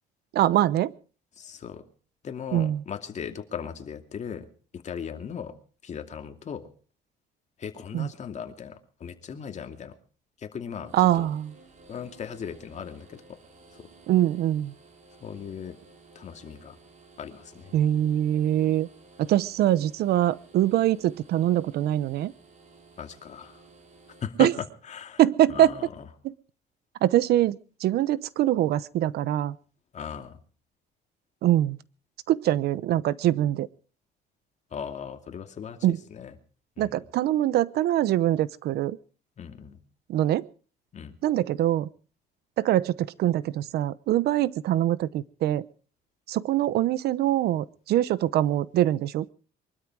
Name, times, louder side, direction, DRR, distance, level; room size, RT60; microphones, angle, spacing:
voice 1, 0.3-0.9 2.5-2.8 7.9-8.1 10.9-11.5 14.1-14.7 17.7-18.9 19.2-22.3 24.4-24.5 25.2-25.8 26.2-26.3 27.0-29.6 31.4-31.8 32.3-33.7 35.8-36.0 36.8-39.0 40.1-40.5 41.2-41.9 42.6-45.7 46.3-49.3, right 13 dB, 70° right, 19 dB, 0.8 m, -23 dB
voice 2, 1.4-1.8 2.2-4.5 4.7-5.5 5.8-6.7 7.6-10.0 10.4-11.3 11.9-13.4 13.8-13.9 15.2-15.8 16.1-16.8 17.2-17.8 23.0-23.6 24.2-25.2 25.5-26.1 29.9-30.4 34.7-36.3 36.8-37.0 39.4-39.8 40.9-41.2, left 7 dB, 45° left, 6 dB, 2.5 m, -38 dB
sound 1, 10.8-24.2, right 3 dB, 45° right, 6.9 m, -54 dB
23.5 x 13.0 x 4.8 m, 0.41 s
cardioid pair, 110°, 17 cm